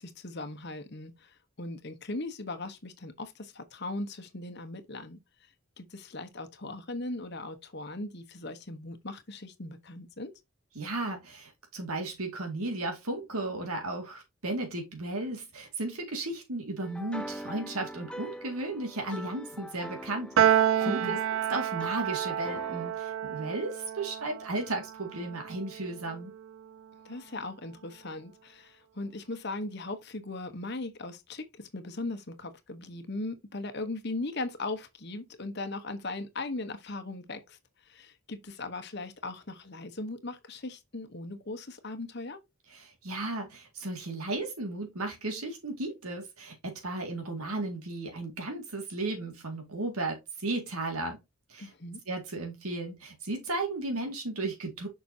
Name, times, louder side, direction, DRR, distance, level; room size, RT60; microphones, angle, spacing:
voice 1, 0.0-5.5 5.8-10.3 20.8-21.2 27.0-42.4 51.6-52.0, left 2 dB, 50° left, 1.1 m, -38 dB
voice 2, 10.8-21.2 21.5-26.3 42.7-51.2 51.5-51.7 52.1-54.9, right 2 dB, 80° right, 2.2 m, -35 dB
sound 1, 16.8-22.9, equal, 5° left, 0.5 m, -43 dB
Piano, 20.4-26.9, right 10 dB, 60° right, 0.3 m, -30 dB
7.0 x 6.0 x 2.8 m
head